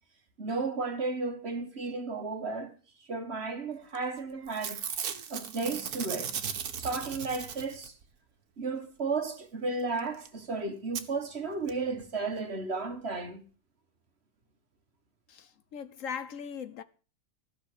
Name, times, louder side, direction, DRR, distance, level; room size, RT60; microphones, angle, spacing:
voice 1, 0.4-2.8 3.1-4.8 5.3-7.9 8.6-13.4, right 3 dB, 45° right, 1.6 m, -34 dB
Packing tape duct tape / Tearing, 3.9-4.2 4.5-8.1 10.0-10.1 10.2-10.3 10.9-11.0 11.7-11.8 12.0-12.1, right 7 dB, 85° right, 1.7 m, -37 dB
voice 2, 15.3-16.8, left 7 dB, 65° left, 1.1 m, -39 dB
15.0 x 6.4 x 8.1 m
omnidirectional pair, 1.6 m